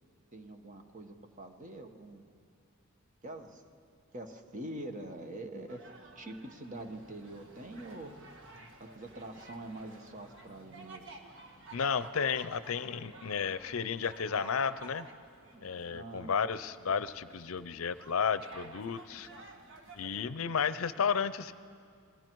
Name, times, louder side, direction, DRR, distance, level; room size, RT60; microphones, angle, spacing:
voice 1, 0.3-2.3 3.2-3.6 4.1-5.8 6.2-8.1 8.8-11.0 15.9-16.3, right 1 dB, 35° right, 6 dB, 1.2 m, -44 dB
sound 1, 5.7-20.2, right 2 dB, 60° right, 1.7 m, -53 dB
voice 2, 11.7-15.1 15.6-19.3 20.0-21.5, left 6 dB, 75° left, 15 dB, 0.6 m, -32 dB
28.5 x 21.0 x 4.6 m, 2.3 s
head